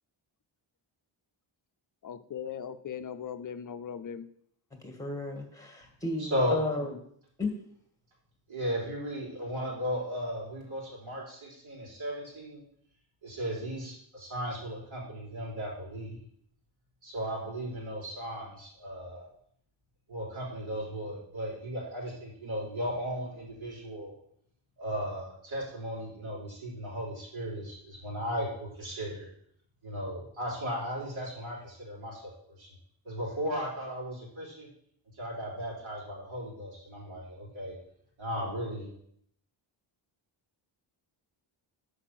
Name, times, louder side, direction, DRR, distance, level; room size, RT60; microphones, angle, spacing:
voice 1, 2.0-4.3, left 7 dB, 40° left, 11 dB, 0.5 m, -39 dB
voice 2, 4.8-7.0 7.4-7.6, left 2 dB, 5° left, 3 dB, 1.8 m, -34 dB
voice 3, 6.2-6.6 8.5-12.6 13.2-16.2 17.0-19.3 20.1-24.1 24.8-29.3 29.8-32.7 33.0-34.7 35.1-37.8 38.2-38.9, equal, 75° right, -4 dB, 3.8 m, -36 dB
6.5 x 5.0 x 5.9 m, 0.66 s
wide cardioid pair, 110°, 49 cm